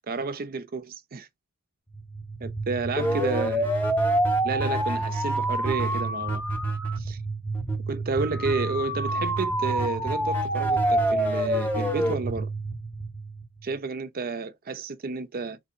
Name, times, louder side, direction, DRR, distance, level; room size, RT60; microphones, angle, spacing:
voice 1, 0.1-1.3 2.4-3.7 4.4-6.4 7.0-7.2 7.9-12.5 13.6-15.6, right 4 dB, 45° right, 0.5 m, -31 dB
sound 1, 1.9-13.8, right 1 dB, 10° left, 0.7 m, -27 dB
3.9 x 2.8 x 2.5 m
head